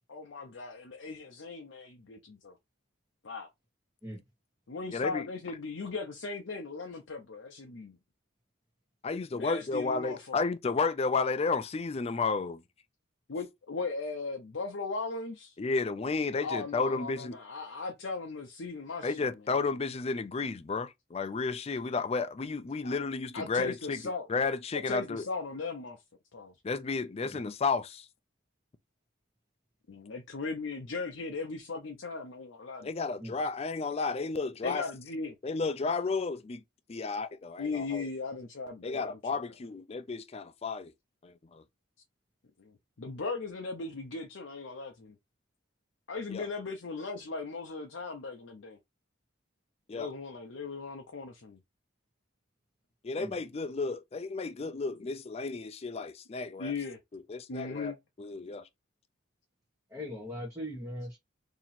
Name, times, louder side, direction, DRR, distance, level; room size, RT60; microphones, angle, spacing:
voice 1, 0.1-2.6 3.2-3.5 4.7-8.0 9.3-10.4 13.3-15.6 16.4-19.3 22.8-23.0 23.3-24.3 24.9-26.0 26.3-26.5 29.9-32.9 34.6-35.3 37.6-39.4 42.6-45.2 46.1-48.8 49.9-51.6 56.6-57.0 57.5-58.0, left 4 dB, 65° left, 0.6 m, -38 dB
voice 2, 4.9-5.3 9.0-12.6 15.6-17.4 19.0-24.0 24.3-25.3 26.6-28.1 32.8-34.8 35.4-36.6 36.9-38.1 38.8-40.9 41.2-41.6 46.3-46.5 49.9-50.1 53.0-56.7 57.1-58.7, left 4 dB, 30° left, 0.4 m, -32 dB
voice 3, 59.9-61.2, equal, 15° right, 1.2 m, -40 dB
2.9 x 2.9 x 4.1 m
head